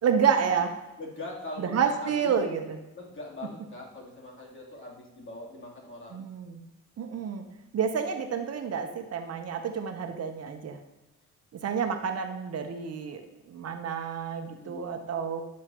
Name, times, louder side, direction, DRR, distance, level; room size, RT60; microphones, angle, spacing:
voice 1, 0.0-0.7 1.6-2.8 6.1-6.6 7.0-7.4 7.7-10.8 11.5-13.2 13.5-15.4, right 7 dB, 55° right, 6 dB, 1.0 m, -29 dB
voice 2, 1.0-2.4 2.9-6.2 14.5-14.9, left 2 dB, 40° left, -3 dB, 3.3 m, -42 dB
12.0 x 7.4 x 3.0 m, 1.0 s
cardioid pair, 90°, 30 cm